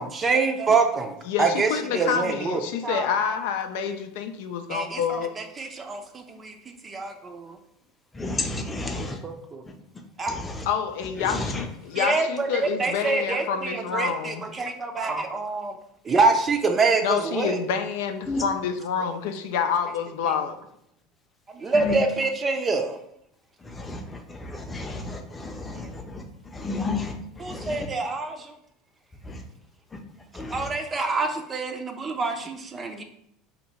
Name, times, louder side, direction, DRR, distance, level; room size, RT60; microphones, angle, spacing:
voice 1, 0.0-3.3 4.7-6.5 6.8-7.6 9.0-9.6 10.2-10.4 12.0-15.7 16.0-17.6 21.5-23.0 25.8-25.9 27.4-28.5 30.5-33.0, right 4 dB, 25° right, 5 dB, 0.5 m, -26 dB
voice 2, 1.3-5.3 10.7-14.4 17.0-20.7, left 7 dB, 75° left, 7 dB, 0.4 m, -28 dB
voice 3, 8.1-9.2 9.6-9.7 10.3-10.7 11.2-11.7 18.3-18.4 21.7-22.0 23.6-27.9 29.2-29.4 29.9-30.0 30.3-30.7, left 3 dB, 15° left, 4 dB, 0.6 m, -32 dB
2.9 x 2.6 x 4.2 m, 0.73 s
supercardioid pair, 100°, 0 cm